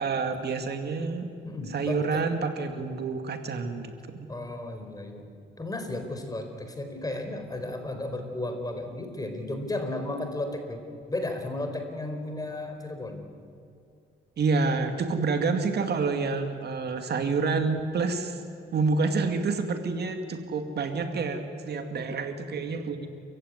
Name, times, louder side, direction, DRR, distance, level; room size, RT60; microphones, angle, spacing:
voice 1, 0.0-1.3 1.7-4.3 14.4-18.4 18.7-23.1, right 4 dB, 55° right, 6 dB, 2.3 m, -28 dB
voice 2, 1.4-2.2 4.3-5.2 5.6-10.8 11.1-13.3, left 2 dB, 20° left, 5 dB, 4.4 m, -34 dB
28.5 x 15.5 x 9.7 m, 2.5 s
cardioid pair, 90°, 20 cm